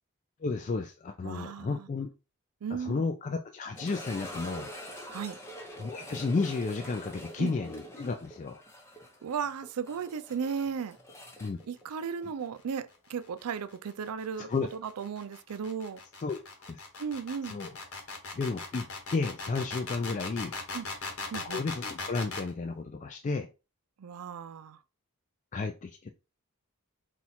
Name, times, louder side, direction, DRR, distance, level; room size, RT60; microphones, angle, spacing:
voice 1, 0.4-2.1 2.7-4.7 5.8-8.6 11.4-11.6 14.4-14.7 16.2-16.4 16.7-16.8 17.5-17.7 18.3-20.5 21.4-23.5 25.5-26.1, left 4 dB, 35° left, 0.3 m, -32 dB
voice 2, 1.2-1.9 2.6-3.1 5.1-5.4 7.4-7.5 9.2-11.0 11.7-16.0 17.0-17.6 20.7-20.9 21.3-21.6 24.0-24.8, right 6 dB, 80° right, 0.4 m, -35 dB
sound 1, 3.7-12.7 12.9-13.0 13.6-13.7 16.3-16.4, equal, 10° left, 0.8 m, -45 dB
sound 2, 13.2-22.5, left 3 dB, 70° left, 1.3 m, -39 dB
4.3 x 2.4 x 4.2 m
head